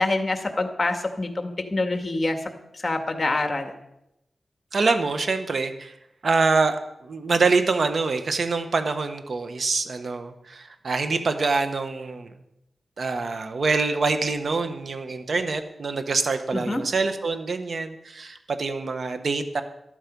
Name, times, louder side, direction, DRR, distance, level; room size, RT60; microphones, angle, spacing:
voice 1, 0.0-2.4 2.8-3.7 16.5-16.8, left 2 dB, 35° left, 5 dB, 2.1 m, -26 dB
voice 2, 4.7-5.9 6.2-6.8 7.0-12.3 13.0-19.6, right 4 dB, 60° right, 8 dB, 1.3 m, -25 dB
13.0 x 12.5 x 5.4 m, 0.84 s
cardioid pair, 70°, 0 cm